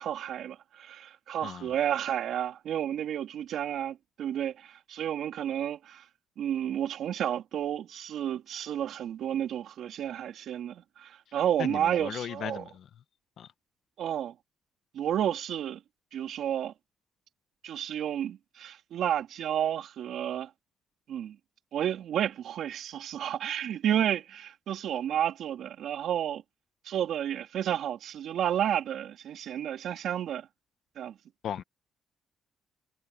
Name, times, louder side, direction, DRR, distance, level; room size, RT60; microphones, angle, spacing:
voice 1, 0.0-6.0 6.4-12.6 14.0-14.3 14.9-15.8 16.1-16.7 17.6-20.5 21.1-21.4 21.7-26.4 26.9-30.5 31.0-31.2, right 10 dB, 75° right, 3.3 m, -31 dB
voice 2, 1.4-1.7 11.6-12.9 13.4-13.5 31.4-31.6, left 9 dB, 65° left, 1.2 m, -37 dB
cardioid pair, 90°, 0 cm